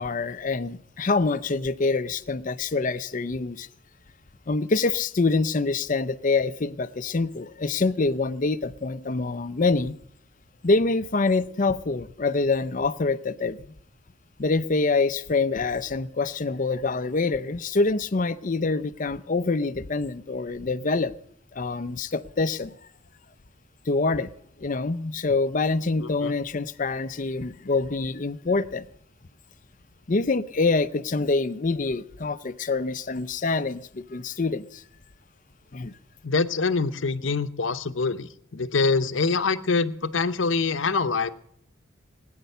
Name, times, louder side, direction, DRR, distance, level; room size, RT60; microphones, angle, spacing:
voice 1, 0.0-3.7 4.5-10.0 10.6-13.7 14.4-21.1 21.5-22.8 23.9-24.3 24.6-28.8 30.1-34.8 35.7-35.9, left 3 dB, 40° left, 14 dB, 0.6 m, -25 dB
voice 2, 26.0-26.3 36.2-41.3, left 4 dB, 70° left, 13 dB, 0.8 m, -25 dB
19.0 x 9.5 x 6.7 m, 0.69 s
head